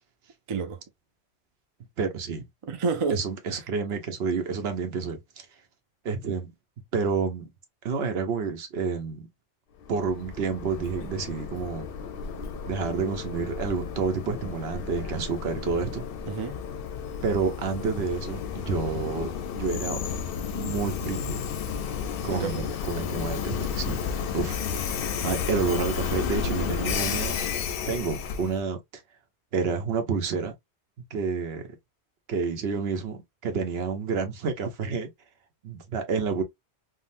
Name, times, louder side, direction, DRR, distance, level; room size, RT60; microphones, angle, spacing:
voice 1, 0.5-0.8 2.6-3.6 16.3-16.6 22.3-22.7, right 5 dB, 45° right, 0.4 m, -30 dB
voice 2, 2.0-2.4 3.1-5.2 6.0-6.5 6.9-7.5 7.8-9.3 9.9-11.9 12.7-16.0 17.2-20.0 20.5-21.4 22.2-24.0 24.3-24.6 25.2-27.4 27.9-28.8 29.5-30.5 31.1-31.7 32.3-35.1 35.6-36.4, right 5 dB, 70° right, 0.9 m, -29 dB
Train, 9.8-28.6, left 6 dB, 65° left, 0.7 m, -32 dB
3.6 x 2.1 x 2.5 m
omnidirectional pair, 1.1 m